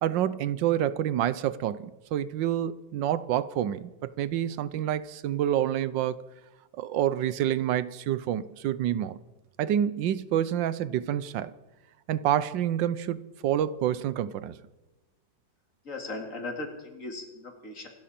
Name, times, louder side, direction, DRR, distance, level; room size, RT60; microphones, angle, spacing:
voice 1, 0.0-6.3 6.8-9.2 9.6-11.5 12.1-14.6, right 11 dB, 80° right, 1.4 m, -28 dB
voice 2, 15.8-17.9, left 2 dB, 45° left, 2.8 m, -38 dB
26.0 x 12.5 x 4.3 m
omnidirectional pair, 2.0 m